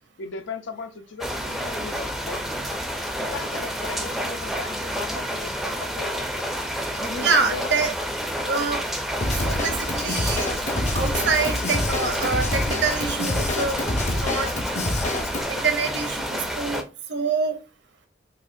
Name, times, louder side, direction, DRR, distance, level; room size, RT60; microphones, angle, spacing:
voice 1, 0.2-2.6 3.2-8.0 15.0-15.1, left 4 dB, 90° left, 0.5 m, -37 dB
sound 1, 1.2-16.8, equal, ahead, 0.4 m, -29 dB
voice 2, 7.2-7.9 8.4-8.8 9.3-10.5 10.9-13.8 14.2-14.5 15.5-16.8 17.1-17.6, right 5 dB, 75° right, 0.8 m, -25 dB
Drum kit / Drum, 9.2-15.4, left 1 dB, 40° left, 0.6 m, -27 dB
4.1 x 2.5 x 2.5 m
head